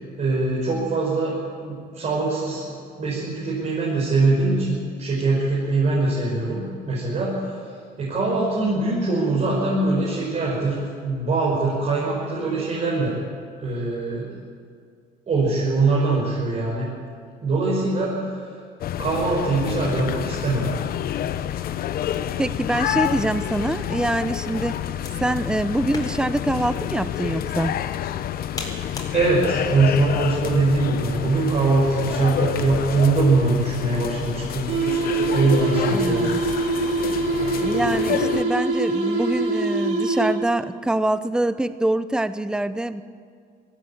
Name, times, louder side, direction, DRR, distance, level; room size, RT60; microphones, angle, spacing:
voice 1, 0.2-7.6 8.0-13.1 13.6-14.4 15.3-16.9 17.4-18.2 19.0-20.7 29.1-34.7 35.3-36.4, right 3 dB, 45° right, -6 dB, 5.9 m, -22 dB
sound 1, 18.8-38.4, left 11 dB, 60° left, 0.9 m, -28 dB
sound 2, 22.0-36.6, left 2 dB, 25° left, 4.5 m, -44 dB
voice 2, 22.4-24.8 25.2-27.7 35.9-36.4 37.6-43.0, right 1 dB, 5° right, 13 dB, 0.7 m, -24 dB
sound 3, 34.7-40.6, right 3 dB, 85° right, 3.6 m, -24 dB
19.0 x 15.5 x 8.8 m, 2.1 s
cardioid pair, 110°, 17 cm